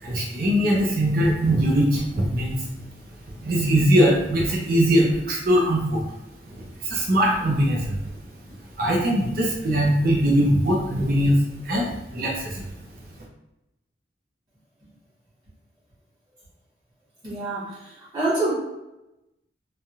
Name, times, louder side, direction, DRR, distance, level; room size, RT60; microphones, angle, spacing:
voice 1, 0.0-2.7 3.4-6.0 6.8-8.0 8.8-11.4 11.6-12.6, equal, 50° right, -3 dB, 0.6 m, -21 dB
voice 2, 17.2-18.5, right 2 dB, 25° right, -10 dB, 1.4 m, -27 dB
3.2 x 2.3 x 2.7 m, 0.93 s
head